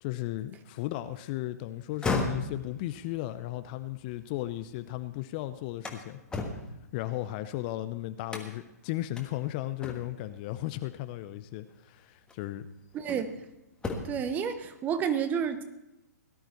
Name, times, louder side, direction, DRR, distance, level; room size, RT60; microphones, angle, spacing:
voice 1, 0.0-6.2 6.9-12.7, left 15 dB, 30° left, 12 dB, 0.6 m, -35 dB
sound 1, 1.8-4.9 5.3-7.7 8.3-8.7 9.2-9.3 9.8-10.3 11.5-11.7 12.3-13.4 13.7-14.3, left 3 dB, 10° left, 1.5 m, -36 dB
voice 2, 12.9-13.4 14.0-15.6, right 7 dB, 20° right, 10 dB, 1.0 m, -30 dB
17.5 x 11.5 x 4.5 m, 0.91 s
figure-of-eight pair, 125°, 9 cm